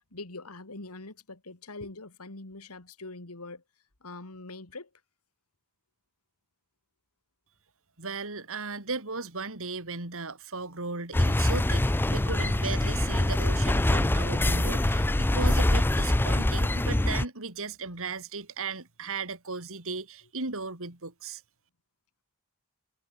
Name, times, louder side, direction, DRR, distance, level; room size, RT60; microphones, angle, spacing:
voice 1, 0.1-3.6 4.0-4.9, left 2 dB, 75° left, 2.6 m, -43 dB
voice 2, 8.0-21.4, right 4 dB, 65° right, 4.1 m, -36 dB
sound 1, 11.1-17.3, left 1 dB, 10° left, 0.5 m, -24 dB
head